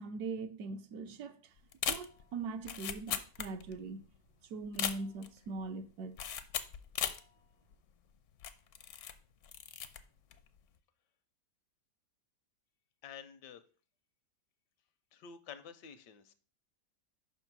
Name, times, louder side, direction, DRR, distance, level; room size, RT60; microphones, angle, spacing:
voice 1, 0.0-1.4 1.9-4.0 4.5-6.1, right 4 dB, 70° right, 1.1 m, -41 dB
sound 1, 1.7-3.9 4.1-4.2 4.6-5.4 6.2-7.3 7.7-7.8 8.4-9.2 9.4-10.0 10.3-10.6, left 9 dB, 65° left, 0.8 m, -38 dB
voice 2, 13.0-13.6 15.1-16.3, left 7 dB, 80° left, 1.3 m, -50 dB
5.6 x 4.5 x 5.9 m
omnidirectional pair, 1.8 m